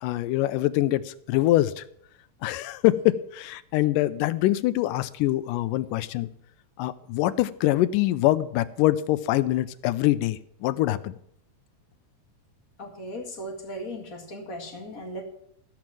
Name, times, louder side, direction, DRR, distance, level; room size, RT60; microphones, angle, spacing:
voice 1, 0.0-1.8 2.4-6.3 6.8-11.2, left 15 dB, 85° left, 13 dB, 2.2 m, -24 dB
voice 2, 12.8-15.2, equal, 30° left, 1 dB, 2.1 m, -37 dB
14.5 x 5.9 x 7.5 m, 0.71 s
omnidirectional pair, 3.8 m